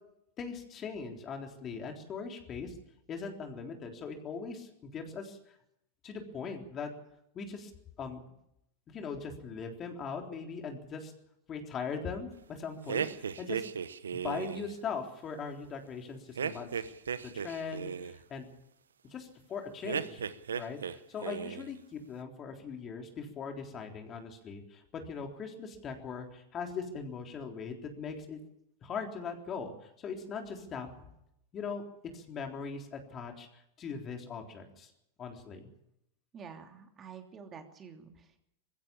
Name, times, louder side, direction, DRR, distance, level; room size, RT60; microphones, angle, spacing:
voice 1, 0.4-2.7 3.1-5.4 6.0-6.9 7.3-7.7 8.0-8.2 8.9-11.1 11.5-13.6 14.2-16.7 17.2-18.5 19.1-20.2 20.6-28.4 28.8-31.1 31.5-31.8 32.1-34.9 35.2-35.7, left 5 dB, 35° left, 3 dB, 3.8 m, -40 dB
grustnyj smeh, 12.9-14.7 16.4-18.2 19.8-21.0 21.2-21.7, right 7 dB, 85° right, 1.0 m, -36 dB
voice 2, 36.3-38.4, right 6 dB, 30° right, 4 dB, 3.0 m, -49 dB
20.5 x 16.0 x 8.8 m, 0.80 s
hypercardioid pair, 100°, 0 cm